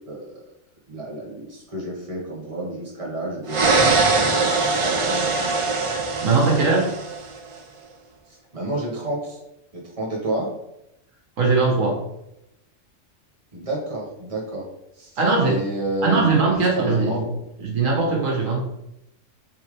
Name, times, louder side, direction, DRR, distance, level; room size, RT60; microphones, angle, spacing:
voice 1, 0.1-0.4 0.9-3.9 4.2-5.5 8.3-9.4 9.7-10.5 13.5-14.7 15.0-17.3, right 1 dB, 25° right, -4 dB, 1.7 m, -30 dB
sound 1, 3.5-7.4, right 3 dB, 45° right, 0.4 m, -21 dB
voice 2, 6.2-6.9 11.4-12.0 15.2-15.6 16.0-17.2 17.6-18.6, right 3 dB, 80° right, -1 dB, 1.6 m, -20 dB
7.5 x 3.7 x 3.4 m, 0.85 s
omnidirectional pair, 1.3 m